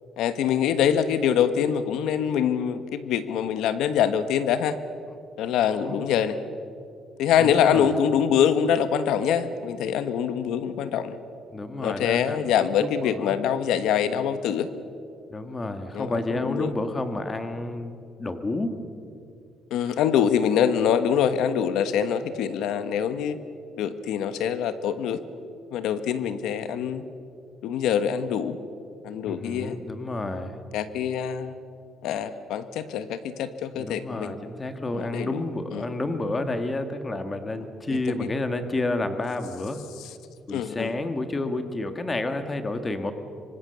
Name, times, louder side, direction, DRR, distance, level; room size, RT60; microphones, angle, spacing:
voice 1, 0.2-4.8 5.4-6.4 7.2-11.2 11.8-14.7 15.9-16.7 19.7-23.4 23.8-25.2 25.7-27.0 27.6-28.6 29.0-29.8 30.7-31.6 32.0-34.3 34.9-35.4 35.7-35.8 37.9-38.3 40.5-40.9, left 8 dB, 80° left, 11 dB, 1.3 m, -24 dB
voice 2, 7.4-7.9 11.5-13.3 15.3-18.8 29.3-30.6 33.8-39.8 40.5-43.1, left 2 dB, 15° left, 8 dB, 1.5 m, -30 dB
26.5 x 25.0 x 6.9 m, 2.5 s
cardioid pair, 170°, 0 cm